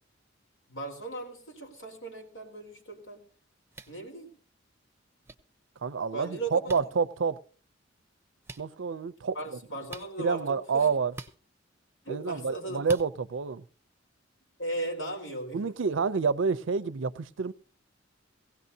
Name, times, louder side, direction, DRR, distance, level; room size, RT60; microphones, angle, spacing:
voice 1, 0.7-3.2 3.9-4.3 6.1-6.6 9.3-10.9 12.0-12.8 14.6-15.6, right 2 dB, 90° left, 4.0 m, -37 dB
sound 1, 3.7-4.0 5.2-5.3 6.7-6.8 8.4-8.6 9.9-10.1 11.1-11.3 12.8-13.1, right 2 dB, 15° right, 0.7 m, -42 dB
voice 2, 5.8-7.4 8.6-9.4 10.2-11.1 12.1-13.6 15.5-17.5, right 5 dB, 70° right, 0.5 m, -28 dB
17.5 x 16.5 x 2.7 m
head